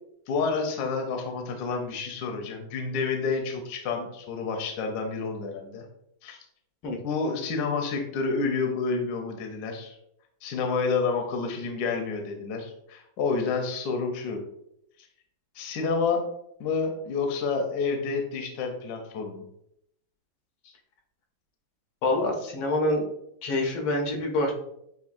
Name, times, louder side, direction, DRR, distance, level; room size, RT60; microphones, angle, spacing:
voice 1, 0.3-5.8 6.2-6.4 7.0-10.0 10.4-14.4 15.5-16.2 16.6-19.4, left 4 dB, 65° left, 4 dB, 1.1 m, -29 dB
voice 2, 22.0-23.0 23.4-24.5, left 1 dB, 85° left, 2 dB, 1.7 m, -26 dB
7.1 x 2.6 x 2.5 m, 0.75 s
omnidirectional pair, 2.1 m